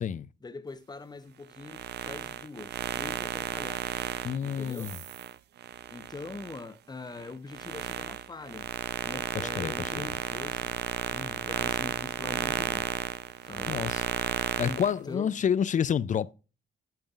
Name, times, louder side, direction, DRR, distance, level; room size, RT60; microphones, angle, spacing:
voice 1, 0.4-3.9 4.4-5.0 5.9-8.7 9.0-10.7 11.1-12.9 13.4-13.8 14.6-15.4, left 3 dB, 20° left, 0.8 m, -43 dB
sound 1, 1.5-6.6 7.1-14.9, right 10 dB, 55° right, 0.5 m, -33 dB
voice 2, 4.2-4.9 9.6-10.1 13.7-14.0 14.6-16.3, left 8 dB, 40° left, 0.4 m, -28 dB
8.9 x 5.3 x 2.4 m
cardioid pair, 90°, 20 cm